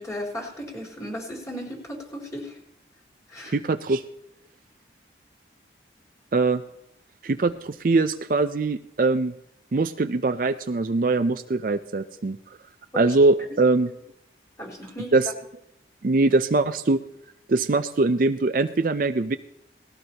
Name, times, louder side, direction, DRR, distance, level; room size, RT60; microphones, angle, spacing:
voice 1, 0.0-2.6 3.3-3.6 12.9-13.2 13.5-13.6 14.6-15.1, equal, 20° left, -2 dB, 3.9 m, -35 dB
voice 2, 3.5-4.0 6.3-6.6 7.2-9.3 9.7-12.4 13.0-13.9 15.1-15.3 16.0-17.0 17.5-19.4, right 3 dB, 50° right, 9 dB, 0.5 m, -22 dB
19.5 x 15.0 x 2.9 m, 0.81 s
head